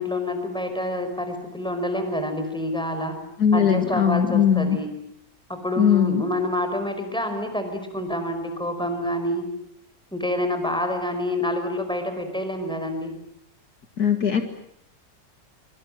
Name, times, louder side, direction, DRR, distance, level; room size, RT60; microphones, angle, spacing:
voice 1, 0.0-3.2 3.5-4.9 5.5-9.5 10.1-13.1, left 1 dB, ahead, 7 dB, 5.0 m, -27 dB
voice 2, 3.4-4.8 5.8-6.2 14.0-14.4, left 8 dB, 60° left, 7 dB, 2.3 m, -19 dB
25.0 x 24.5 x 9.0 m, 0.72 s
omnidirectional pair, 1.9 m